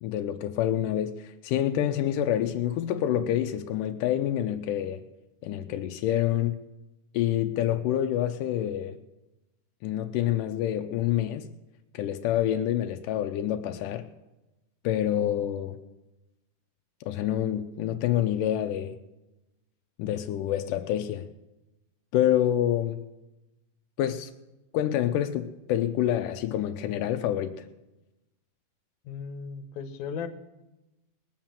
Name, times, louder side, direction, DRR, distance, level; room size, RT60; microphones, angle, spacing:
voice 1, 0.0-5.0 5.4-6.6 7.1-9.0 9.8-11.5 11.9-14.0 14.8-15.8 17.0-19.0 20.0-21.3 22.1-23.0 24.0-24.3 24.7-27.7, left 11 dB, 85° left, 7 dB, 2.2 m, -27 dB
voice 2, 29.0-30.3, left 6 dB, 70° left, 7 dB, 2.4 m, -36 dB
20.0 x 7.4 x 7.3 m, 1.0 s
omnidirectional pair, 3.6 m